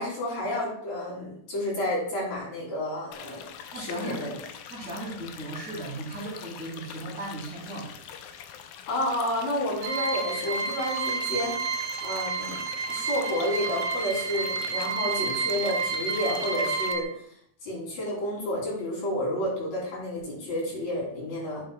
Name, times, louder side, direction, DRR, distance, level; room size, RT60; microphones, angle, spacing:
voice 1, 0.0-3.5 3.7-4.4 8.9-11.7 12.0-12.6 12.9-17.2 17.6-21.6, left 1 dB, 65° left, -5 dB, 4.3 m, -30 dB
sound 1, 3.1-16.9, left 8 dB, 85° left, 2.1 m, -44 dB
voice 2, 3.7-4.3 4.7-7.9, right 2 dB, 25° right, -7 dB, 2.6 m, -37 dB
sound 2, 9.8-17.0, right 5 dB, 80° right, 1.5 m, -30 dB
10.5 x 6.9 x 2.2 m, 0.64 s
omnidirectional pair, 3.5 m